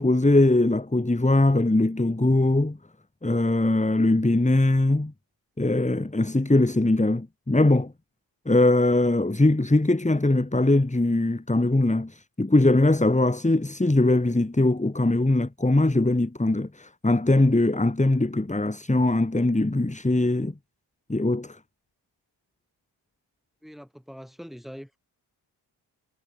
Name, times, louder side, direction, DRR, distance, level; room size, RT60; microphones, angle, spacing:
voice 1, 0.0-2.8 3.2-5.1 5.6-7.9 8.5-20.5 21.1-21.6, left 2 dB, 15° left, 2.6 m, -21 dB
voice 2, 23.6-25.0, equal, ahead, 6.6 m, -43 dB
supercardioid pair, 40°, 48 cm